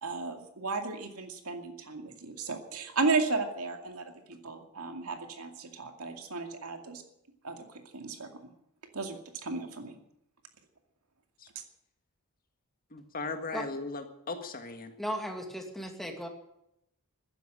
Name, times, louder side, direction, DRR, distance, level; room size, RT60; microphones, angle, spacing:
voice 1, 0.0-7.0 7.4-7.6 7.9-8.5 8.9-10.0 11.6-11.7, right 3 dB, 80° right, 5 dB, 2.4 m, -34 dB
voice 2, 12.9-14.9, left 3 dB, 40° left, 6 dB, 1.8 m, -37 dB
voice 3, 15.0-16.3, equal, ahead, 3 dB, 2.2 m, -36 dB
14.5 x 10.5 x 9.0 m, 0.79 s
head